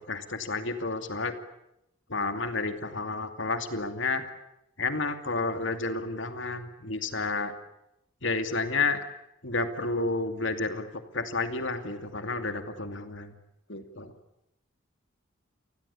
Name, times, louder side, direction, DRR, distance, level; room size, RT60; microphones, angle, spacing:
voice 1, 0.0-1.4 2.1-4.2 4.8-7.5 8.2-9.0 9.4-13.3 13.7-14.1, left 3 dB, 60° left, 8 dB, 2.6 m, -31 dB
28.0 x 21.0 x 8.5 m, 0.83 s
head